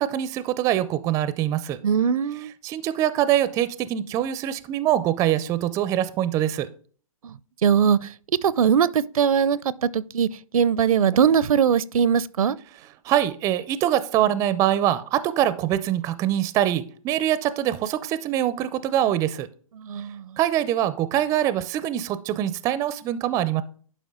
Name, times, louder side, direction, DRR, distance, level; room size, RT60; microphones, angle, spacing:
voice 1, 0.0-1.8 2.6-6.7 13.1-19.5 20.4-23.6, right 12 dB, 15° right, 0.4 m, -24 dB
voice 2, 1.8-2.5 7.2-7.3 7.6-8.0 8.4-10.3 10.5-12.6 19.8-20.4, right 7 dB, 75° right, 0.6 m, -21 dB
11.5 x 5.2 x 3.7 m
hypercardioid pair, 140°, 18 cm